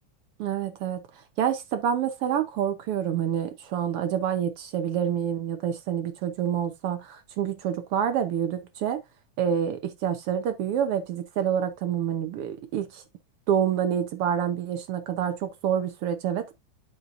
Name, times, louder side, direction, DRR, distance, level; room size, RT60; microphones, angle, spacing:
voice 1, 0.4-1.0 1.4-9.0 9.4-13.0 13.5-16.5, right 9 dB, 85° right, 1.2 m, -27 dB
11.0 x 5.6 x 2.5 m
omnidirectional pair, 3.8 m